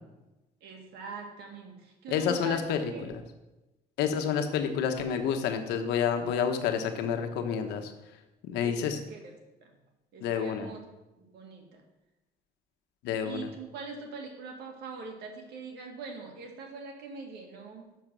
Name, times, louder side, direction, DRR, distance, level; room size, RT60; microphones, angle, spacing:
voice 1, 0.6-2.6 2.9-3.1 8.5-9.3 9.6-9.7 10.1-10.8 11.2-11.8 13.2-17.9, right 5 dB, 75° right, 1 dB, 2.0 m, -43 dB
voice 2, 2.1-3.1 4.0-7.9 8.4-9.0 10.2-10.7 13.0-13.5, left 7 dB, 85° left, 6 dB, 1.1 m, -29 dB
6.7 x 6.7 x 6.2 m, 1.0 s
cardioid pair, 110°, 17 cm